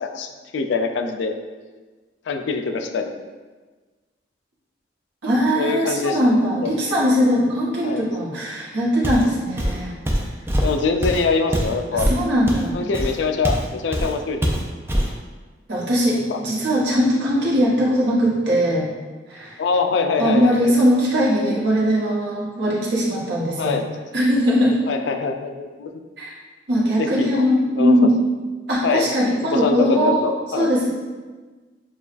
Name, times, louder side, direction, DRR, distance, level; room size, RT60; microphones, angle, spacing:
voice 1, 0.5-1.3 2.3-3.1 5.6-6.2 6.6-6.7 7.8-8.0 10.6-12.1 12.7-14.5 16.3-16.4 19.6-20.8 23.6-23.9 24.9-25.9 27.0-27.4 27.8-27.9 28.8-29.1 29.5-30.7, left 4 dB, 80° left, 5 dB, 0.4 m, -23 dB
voice 2, 5.2-9.9 11.9-12.8 15.7-18.9 19.3-19.6 20.2-23.8 24.1-24.8 26.2-26.3 26.7-28.2 28.7-30.2 30.5-30.9, equal, 75° right, -6 dB, 1.1 m, -20 dB
Walk footsteps, 9.0-9.3 9.6-13.7 13.9-14.1 14.4-15.2, equal, 15° right, 0.4 m, -23 dB
6.9 x 2.3 x 2.5 m, 1.3 s
head